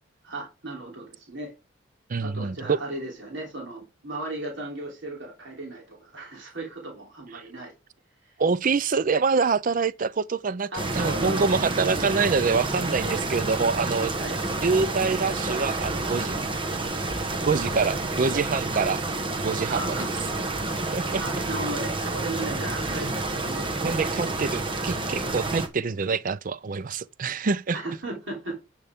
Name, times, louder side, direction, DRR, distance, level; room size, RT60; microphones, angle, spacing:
voice 1, 0.2-1.5 2.2-7.7 8.2-8.3 10.7-11.6 13.0-13.2 14.2-14.4 19.7-20.3 21.1-24.6 27.7-28.6, right 2 dB, 65° right, 3.3 m, -36 dB
voice 2, 2.1-2.8 8.4-14.1 14.6-16.4 17.5-19.0 19.4-20.0 20.9-21.2 22.5-22.6 22.9-23.1 23.8-27.8, right 4 dB, 40° right, 0.4 m, -26 dB
sound 1, 10.8-25.7, right 2 dB, 25° right, 1.3 m, -29 dB
11.0 x 6.9 x 3.6 m
head